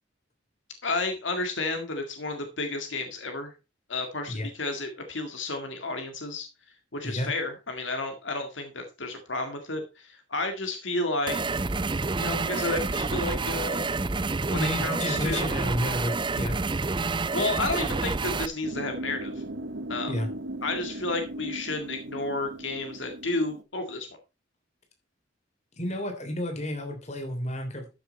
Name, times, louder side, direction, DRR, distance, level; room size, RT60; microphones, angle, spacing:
voice 1, 0.8-3.5 3.9-6.5 6.9-11.5 12.2-13.8 14.5-15.5 17.3-19.3 19.9-20.1 20.6-24.1, left 2 dB, 80° left, 5 dB, 2.0 m, -31 dB
sound 1, 11.3-18.5, right 3 dB, 25° right, 0.5 m, -28 dB
voice 2, 14.5-16.6 20.1-20.3 25.8-27.9, left 1 dB, 35° left, 4 dB, 3.3 m, -31 dB
sound 2, 18.6-23.6, right 1 dB, 80° right, 1.2 m, -38 dB
13.5 x 6.7 x 4.2 m, 0.29 s
head